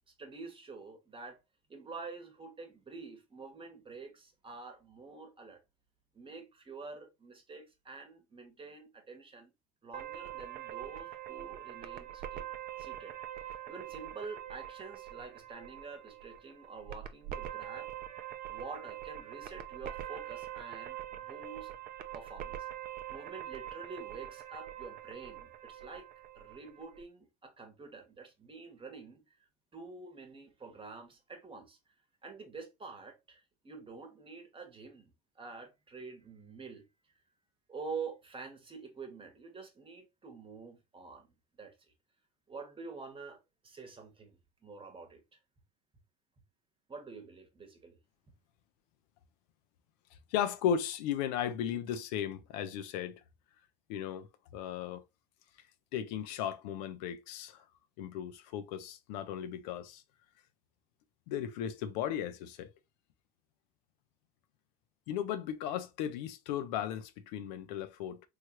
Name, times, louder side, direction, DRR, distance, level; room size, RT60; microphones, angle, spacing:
voice 1, 0.1-1.4 1.7-5.6 6.1-9.5 9.8-12.5 12.8-13.1 13.7-17.9 18.5-21.7 22.1-22.7 23.1-26.1 26.3-29.4 29.7-31.8 32.2-36.8 37.7-41.3 41.6-41.7 42.5-45.4 46.9-48.0, right 4 dB, 25° right, 1.1 m, -47 dB
sound 1, 9.9-27.0, right 12 dB, 45° right, 0.5 m, -44 dB
voice 2, 50.3-53.2 53.9-55.1 55.9-57.6 58.0-60.0 61.3-62.7 65.1-68.2, left 9 dB, 75° left, 0.5 m, -36 dB
3.2 x 2.3 x 3.0 m
supercardioid pair, 85°, 21 cm